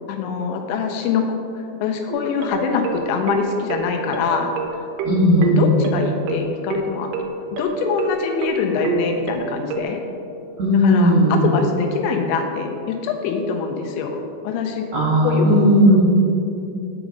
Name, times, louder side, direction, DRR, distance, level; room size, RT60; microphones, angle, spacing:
voice 1, 0.1-1.3 1.6-4.5 4.8-4.9 5.4-7.1 7.5-10.0 10.8-14.9 15.2-15.5, left 5 dB, 85° left, 4 dB, 2.9 m, -24 dB
sound 1, 2.1-9.8, right 5 dB, 85° right, 2.3 m, -27 dB
voice 2, 5.0-5.6 10.6-11.5 14.9-16.0, equal, 60° right, -7 dB, 2.0 m, -15 dB
6.4 x 5.9 x 5.1 m, 2.6 s
omnidirectional pair, 5.2 m